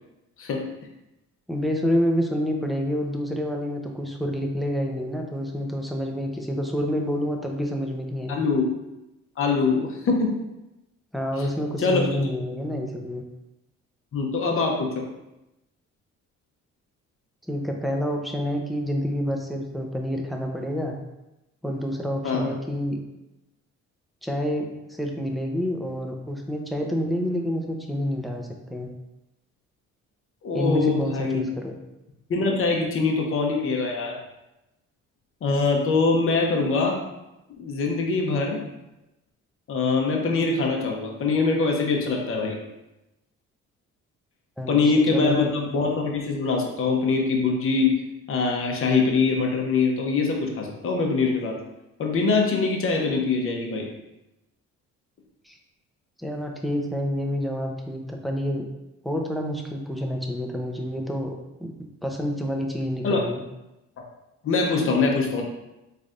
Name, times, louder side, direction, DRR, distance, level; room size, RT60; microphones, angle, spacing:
voice 1, 1.5-8.5 11.1-13.2 17.5-21.0 21.6-23.0 24.2-28.9 30.5-31.7 44.6-44.7 45.1-45.4 55.5-55.6 56.2-58.7 59.0-61.3 61.6-61.7 62.0-63.4, equal, ahead, 1 dB, 0.5 m, -28 dB
voice 2, 8.3-8.7 9.4-10.3 11.8-12.3 14.1-15.0 22.2-22.5 30.4-31.4 32.3-34.2 35.4-37.0 37.6-38.6 39.7-42.6 44.7-48.0 48.3-51.6 52.0-53.9 63.0-63.2 64.4-65.4, left 4 dB, 45° left, 1 dB, 0.8 m, -23 dB
4.0 x 3.3 x 2.5 m, 0.94 s
cardioid pair, 90°, 30 cm